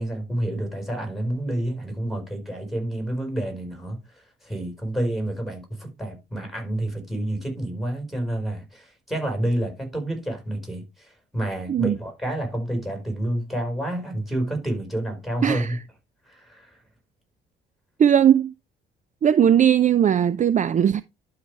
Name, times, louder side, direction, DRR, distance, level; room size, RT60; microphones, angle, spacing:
voice 1, 0.0-15.8 16.3-16.8, right 1 dB, ahead, 4.7 m, -29 dB
voice 2, 15.4-15.8 18.0-18.5 19.2-21.0, right 9 dB, 40° right, 0.4 m, -18 dB
12.0 x 4.9 x 3.3 m
cardioid pair, 90°, 20 cm